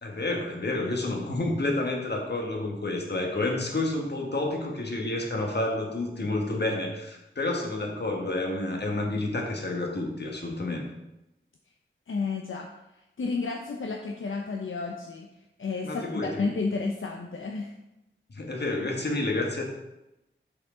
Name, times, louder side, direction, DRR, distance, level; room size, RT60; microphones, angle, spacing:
voice 1, 0.0-10.9 15.8-16.4 18.3-19.6, left 2 dB, 55° left, 1 dB, 1.4 m, -29 dB
voice 2, 12.1-12.7 13.2-15.3 15.6-17.7, left 4 dB, 75° left, 1 dB, 0.7 m, -31 dB
6.6 x 6.1 x 3.8 m, 0.92 s
wide cardioid pair, 85°, 21 cm